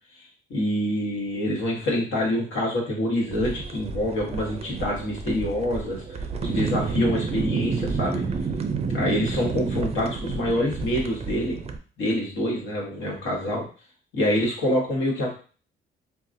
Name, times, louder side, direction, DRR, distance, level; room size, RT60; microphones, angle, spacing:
voice 1, 0.5-8.2 8.9-11.6 12.0-13.6 14.1-15.3, left 1 dB, 80° left, -3 dB, 1.3 m, -26 dB
sound 1, 3.3-11.8, right 5 dB, 30° right, 0.4 m, -30 dB
3.8 x 2.2 x 2.6 m, 0.38 s
cardioid pair, 90°, 20 cm